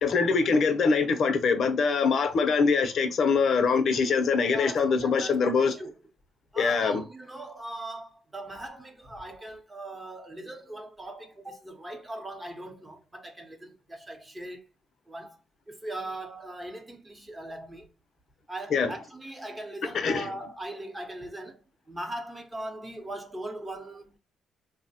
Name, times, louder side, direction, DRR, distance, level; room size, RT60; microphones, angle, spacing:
voice 1, 0.0-5.7 6.6-7.0 18.7-18.9 19.8-20.3, left 5 dB, 60° left, 0.5 m, -24 dB
voice 2, 4.5-5.9 6.5-14.6 15.1-15.4 15.7-17.9 18.5-21.6 21.9-24.2, right 1 dB, 20° right, 0.8 m, -40 dB
3.1 x 2.1 x 2.6 m
cardioid pair, 90°, 0 cm